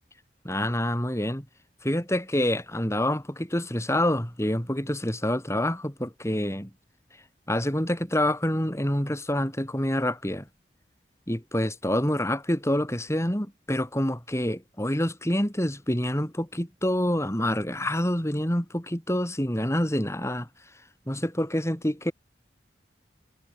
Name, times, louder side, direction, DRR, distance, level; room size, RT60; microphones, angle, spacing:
voice 1, 0.4-1.5 1.8-6.7 7.5-10.5 11.3-20.5 21.1-22.1, left 1 dB, 15° left, 6.0 m, -27 dB
head